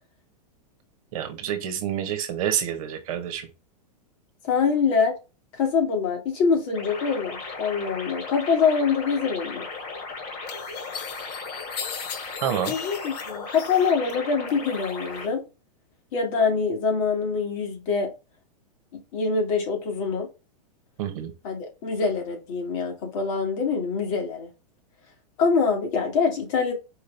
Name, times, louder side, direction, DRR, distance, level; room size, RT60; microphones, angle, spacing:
voice 1, 1.1-3.5 11.8-11.9 12.4-12.7 21.0-21.3, right 9 dB, 55° right, 1.0 m, -28 dB
voice 2, 4.5-5.1 5.5-9.7 12.7-15.4 16.1-18.1 19.1-20.3 21.4-24.5 25.4-26.7, left 5 dB, 55° left, 2.1 m, -24 dB
sound 1, 6.7-15.3, left 4 dB, 40° left, 2.0 m, -36 dB
sound 2, 9.7-9.8 10.5-14.1 14.5-15.2, left 8 dB, 75° left, 0.8 m, -38 dB
4.7 x 2.7 x 3.3 m
hypercardioid pair, 125°, 21 cm